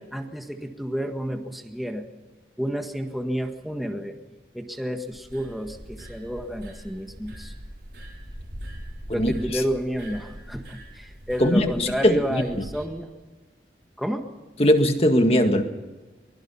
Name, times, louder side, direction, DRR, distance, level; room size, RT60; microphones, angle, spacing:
voice 1, 0.0-2.1 2.6-4.2 4.5-7.5 9.1-13.1 14.0-14.3, equal, ahead, 4 dB, 1.6 m, -30 dB
sound 1, 5.1-12.9, equal, 75° right, 4.8 m, -41 dB
voice 2, 11.4-12.7 14.6-15.6, equal, 35° left, 6 dB, 1.8 m, -20 dB
23.5 x 21.5 x 5.7 m, 1.3 s
head